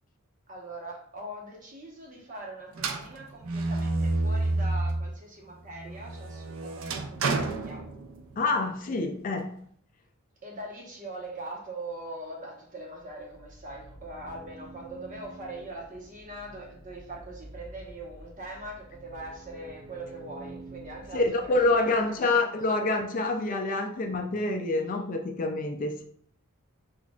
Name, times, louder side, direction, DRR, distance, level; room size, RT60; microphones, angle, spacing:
voice 1, 0.5-7.8 10.4-22.7 23.4-23.6, right 1 dB, 40° right, -1 dB, 1.0 m, -42 dB
sound 1, 2.8-5.2 5.6-8.5, right 2 dB, 65° right, 0.4 m, -30 dB
voice 2, 8.4-9.5 21.1-26.0, left 2 dB, 40° left, 4 dB, 0.4 m, -27 dB
sound 2, 12.9-22.2, right 2 dB, 20° right, 0.6 m, -48 dB
6.0 x 2.4 x 2.3 m, 0.64 s
head